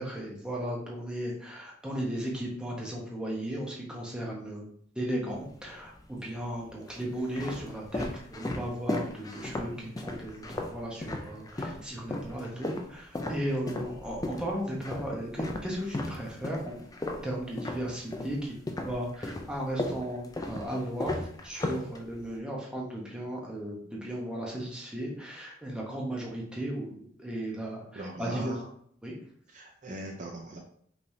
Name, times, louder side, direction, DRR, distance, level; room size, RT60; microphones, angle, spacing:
voice 1, 0.0-4.7 4.9-16.8 17.2-18.6 18.8-28.5 29.0-29.1, right 1 dB, 5° right, -3 dB, 1.0 m, -36 dB
sound 1, 5.3-6.0 6.7-11.8 12.1-18.4 18.7-22.4, left 1 dB, 20° left, 0.4 m, -35 dB
voice 2, 28.0-28.7 29.5-30.6, right 1 dB, 40° right, 0 dB, 0.5 m, -39 dB
5.2 x 3.2 x 2.7 m, 0.62 s
head